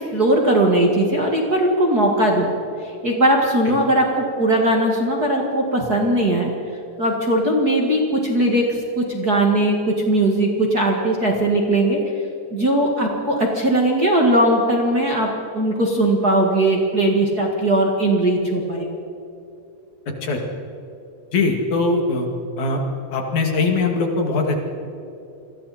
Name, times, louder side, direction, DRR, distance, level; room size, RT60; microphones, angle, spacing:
voice 1, 0.1-2.5 2.8-6.5 7.0-8.7 9.0-12.0 12.5-15.3 15.5-18.9, right 1 dB, 30° right, 0 dB, 2.1 m, -19 dB
voice 2, 21.3-22.3 22.6-22.8 23.1-24.6, left 3 dB, 60° left, 2 dB, 3.6 m, -21 dB
29.0 x 22.5 x 4.3 m, 2.8 s
omnidirectional pair, 3.9 m